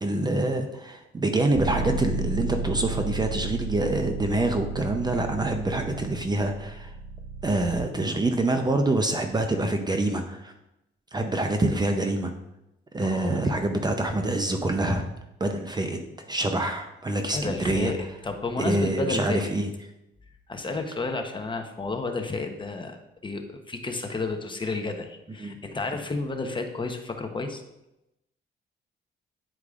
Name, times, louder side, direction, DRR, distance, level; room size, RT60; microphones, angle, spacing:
voice 1, 0.0-6.9 7.4-10.5 11.1-12.3 12.9-15.1 15.4-17.9 18.6-19.7 25.4-25.6, right 2 dB, 20° right, 5 dB, 0.6 m, -26 dB
Bass guitar, 1.5-7.8, right 3 dB, 55° left, 1.5 m, -33 dB
voice 2, 13.0-13.4 17.3-19.4 20.5-23.0 23.2-27.6, left 3 dB, 25° left, 5 dB, 0.8 m, -31 dB
10.0 x 4.6 x 2.5 m, 0.90 s
cardioid pair, 90°, 20 cm